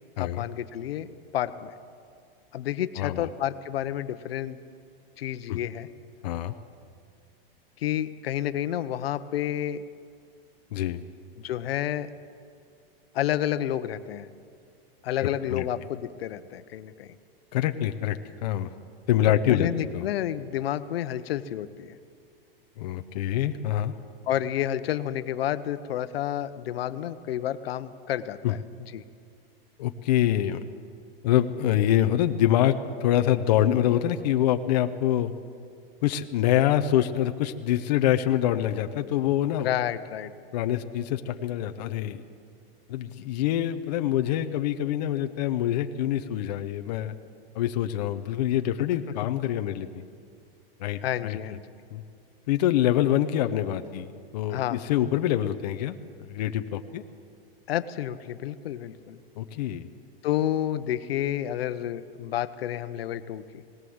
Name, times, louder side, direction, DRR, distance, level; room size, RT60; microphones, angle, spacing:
voice 1, 0.2-1.1 1.3-1.7 2.5-4.6 5.2-5.9 7.8-9.8 11.4-12.1 13.1-14.3 15.0-17.2 19.3-21.9 24.3-29.0 39.6-40.3 51.0-51.6 54.5-54.8 57.7-59.2 60.2-63.6, left 11 dB, 80° left, 12 dB, 1.0 m, -30 dB
voice 2, 3.0-3.3 5.5-5.6 6.2-6.5 10.7-11.0 15.2-15.6 17.5-18.7 19.1-20.0 22.8-23.9 28.4-28.5 29.8-30.6 31.2-35.3 36.0-39.7 40.5-42.2 42.9-47.1 47.5-50.0 50.8-51.4 51.9-52.0 52.5-54.1 54.3-57.0 59.4-59.9, left 11 dB, 45° left, 7 dB, 0.7 m, -25 dB
19.0 x 17.5 x 7.9 m, 2.4 s
supercardioid pair, 180°, 29 cm